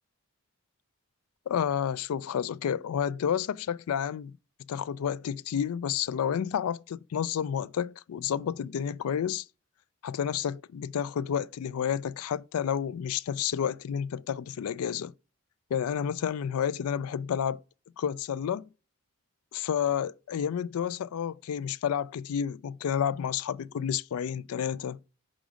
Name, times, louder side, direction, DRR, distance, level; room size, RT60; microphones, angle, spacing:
voice 1, 1.5-4.3 4.7-9.4 10.0-15.1 15.7-17.6 18.0-18.7 19.5-25.0, left 8 dB, 90° left, 0.4 m, -30 dB
5.1 x 5.0 x 6.1 m
head